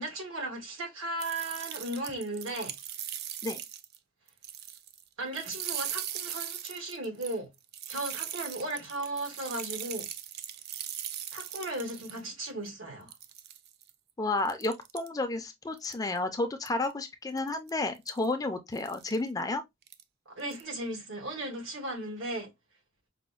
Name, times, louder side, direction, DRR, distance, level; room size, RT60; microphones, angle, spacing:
voice 1, 0.0-2.7 5.2-7.5 7.9-10.1 11.3-13.1 20.3-22.5, right 1 dB, 85° right, 1.4 m, -36 dB
sound 1, 1.2-4.0 4.3-5.0 5.3-12.2 12.7-12.8 13.1-13.9 14.5-15.1 15.8-16.2 16.7-16.9 17.4-17.7 18.1-18.3 18.8-19.2 19.8-20.0 20.4-20.6, right 11 dB, 50° right, 0.3 m, -39 dB
voice 2, 14.2-19.6, left 2 dB, 20° left, 0.4 m, -31 dB
4.9 x 2.1 x 2.3 m
head